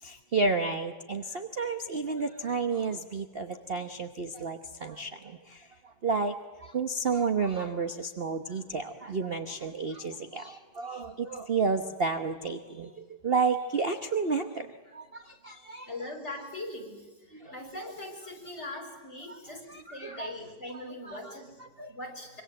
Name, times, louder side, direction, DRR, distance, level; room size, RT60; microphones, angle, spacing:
voice 1, 0.0-5.7 6.0-14.7 14.9-15.9 17.4-17.5 19.3-19.4 19.7-20.3 21.0-21.9, right 4 dB, 35° right, 7 dB, 1.1 m, -31 dB
voice 2, 15.9-21.6 21.9-22.4, left 1 dB, 35° left, 1 dB, 5.8 m, -41 dB
26.0 x 24.0 x 7.9 m, 1.3 s
omnidirectional pair, 2.0 m